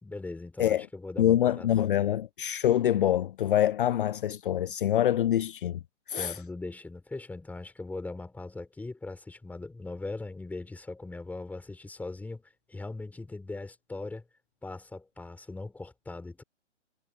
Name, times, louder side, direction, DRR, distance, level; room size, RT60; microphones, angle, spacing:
voice 1, 0.0-1.7 6.2-14.3 14.6-16.4, left 2 dB, 5° left, 4.8 m, -40 dB
voice 2, 1.2-5.8 6.1-6.4, left 11 dB, 45° left, 0.7 m, -25 dB
figure-of-eight pair, 130°, 36 cm